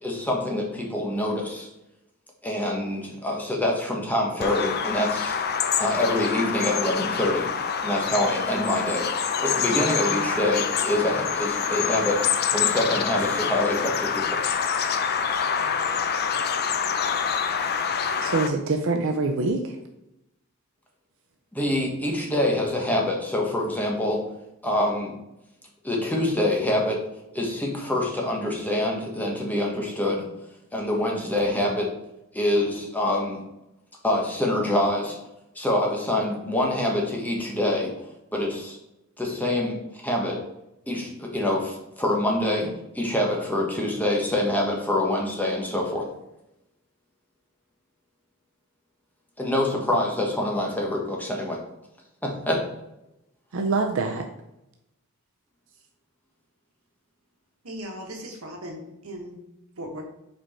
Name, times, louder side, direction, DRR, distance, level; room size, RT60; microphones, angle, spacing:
voice 1, 0.0-1.7 2.4-5.3 5.8-7.5 7.8-9.1 9.4-12.2 12.5-14.4 21.5-24.2 24.6-25.1 25.8-27.0 27.3-30.2 30.7-31.9 32.3-33.4 34.0-35.2 35.5-37.9 38.3-38.8 39.2-39.8 40.0-40.4 40.9-46.1 49.4-51.6 52.2-52.6, left 1 dB, 10° left, -1 dB, 1.2 m, -25 dB
Bird vocalization bird call bird song, 4.4-18.5, left 7 dB, 50° left, 0.5 m, -26 dB
voice 2, 18.2-19.8 53.5-54.2, right 3 dB, 65° right, 4 dB, 0.6 m, -25 dB
voice 3, 57.6-59.4 59.8-60.0, equal, 85° right, 2 dB, 1.3 m, -37 dB
5.2 x 4.6 x 4.3 m, 0.88 s
head